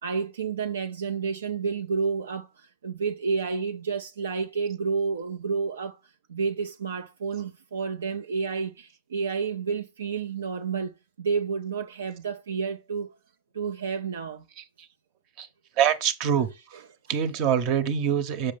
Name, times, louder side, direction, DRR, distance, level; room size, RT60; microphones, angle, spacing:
voice 1, 0.0-6.0 6.3-13.1 13.5-14.5, right 5 dB, 85° right, 0.4 m, -30 dB
voice 2, 15.8-16.5 17.1-18.5, right 8 dB, 50° right, 0.9 m, -24 dB
6.7 x 5.0 x 3.4 m
hypercardioid pair, 110°, 0 cm